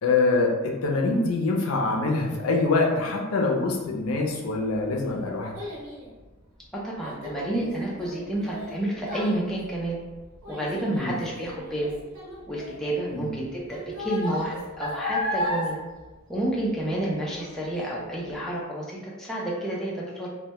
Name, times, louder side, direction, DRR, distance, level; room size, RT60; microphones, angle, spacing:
voice 1, 0.0-5.5 11.0-11.2 13.1-13.3, left 3 dB, 85° left, 0 dB, 0.4 m, -24 dB
Child speech kid speaking, 4.4-17.0 17.4-17.8 18.3-18.4, left 1 dB, 90° right, 0.8 m, -35 dB
voice 2, 6.7-10.0 10.5-11.9 12.5-15.8 16.3-20.3, right 1 dB, ahead, -6 dB, 0.4 m, -30 dB
2.1 x 2.1 x 2.8 m, 1.2 s
head